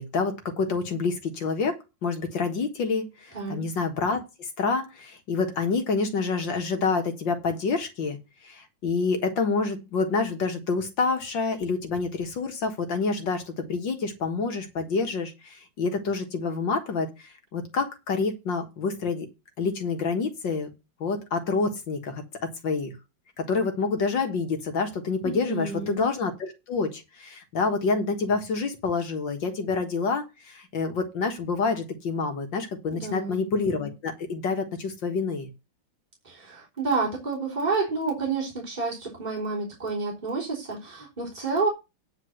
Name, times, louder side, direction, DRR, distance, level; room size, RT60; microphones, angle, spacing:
voice 1, 0.0-8.2 8.4-19.3 19.6-20.7 21.0-22.2 22.6-22.9 23.4-35.5, left 4 dB, 65° left, 2.3 m, -28 dB
voice 2, 3.3-3.7 25.2-26.0 32.9-33.5 36.2-41.7, right 4 dB, 20° right, 3.6 m, -29 dB
9.8 x 4.5 x 7.8 m
omnidirectional pair, 2.2 m